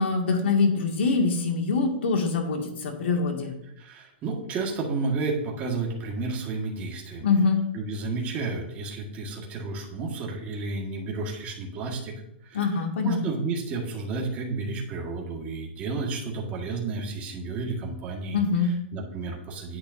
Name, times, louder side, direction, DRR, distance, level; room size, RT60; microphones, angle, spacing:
voice 1, 0.0-3.5 7.2-7.6 12.5-13.2 18.3-18.7, left 4 dB, 75° left, 3 dB, 2.1 m, -24 dB
voice 2, 3.8-7.3 7.7-12.1 12.4-18.4 18.9-19.8, right 3 dB, 25° right, -1 dB, 1.7 m, -31 dB
10.0 x 8.6 x 2.7 m, 0.84 s
hypercardioid pair, 160°, 6 cm